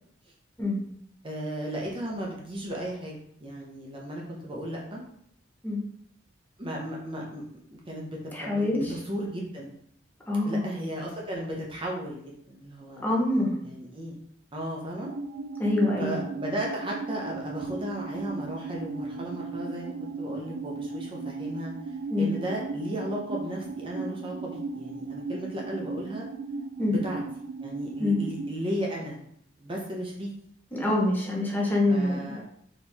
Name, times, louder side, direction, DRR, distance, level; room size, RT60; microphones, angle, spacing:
voice 1, 1.2-3.2 3.4-5.0 6.6-7.4 7.7-9.7 10.4-13.2 13.6-14.2 14.5-15.1 16.0-26.2 26.9-27.2 27.6-29.2 29.6-30.3 31.9-32.4, equal, 30° right, -2 dB, 0.7 m, -35 dB
voice 2, 8.3-8.8 10.3-10.6 13.0-13.6 15.6-16.2 22.1-22.3 26.8-27.0 28.0-28.2 30.7-32.3, left 2 dB, 10° left, -4 dB, 0.9 m, -25 dB
sound 1, 15.0-28.6, right 3 dB, 85° right, 0.4 m, -36 dB
4.3 x 3.0 x 3.5 m, 0.68 s
head